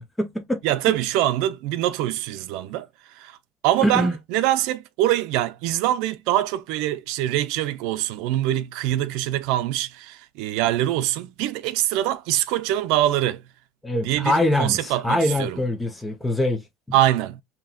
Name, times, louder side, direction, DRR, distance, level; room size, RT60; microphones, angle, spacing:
voice 1, 0.0-0.6 3.8-4.2 13.8-17.0, left 1 dB, 5° left, 0.6 m, -24 dB
voice 2, 0.6-2.9 3.2-3.3 3.6-13.4 14.0-15.6 16.9-17.4, right 13 dB, 65° right, 0.6 m, -24 dB
5.6 x 2.9 x 2.3 m
cardioid pair, 170°, 0 cm